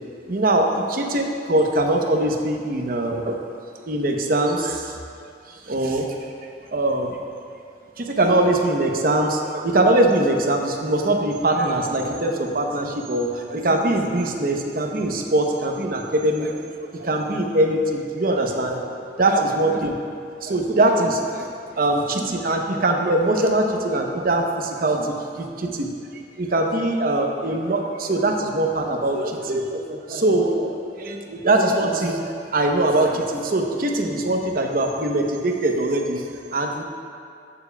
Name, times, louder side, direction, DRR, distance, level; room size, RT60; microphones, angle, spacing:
voice 1, 0.3-3.4 3.9-5.0 5.7-6.1 6.7-7.2 8.0-19.9 20.4-21.5 21.8-25.9 26.4-36.2 36.5-36.8, right 1 dB, 55° right, 2 dB, 0.8 m, -22 dB
13.5 x 7.0 x 2.2 m, 2.4 s
head